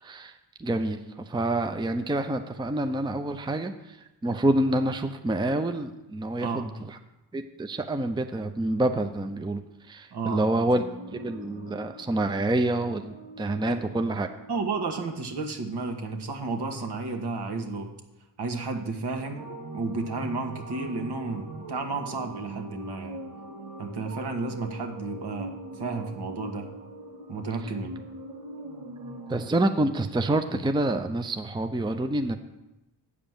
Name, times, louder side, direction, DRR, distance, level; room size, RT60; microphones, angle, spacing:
voice 1, 0.0-7.0 7.3-10.8 11.1-14.3 29.3-32.4, right 1 dB, 10° right, 7 dB, 0.6 m, -27 dB
voice 2, 10.1-10.7 13.6-13.8 14.5-17.9 18.4-19.5 19.7-23.2 23.8-26.7 27.3-28.0, right 3 dB, 55° right, 4 dB, 1.6 m, -32 dB
sound 1, 10.6-15.0 15.2-15.6 16.4-16.5 19.0-29.5, right 1 dB, 75° right, 2.0 m, -42 dB
8.1 x 5.0 x 7.3 m, 0.99 s
supercardioid pair, 50°, 47 cm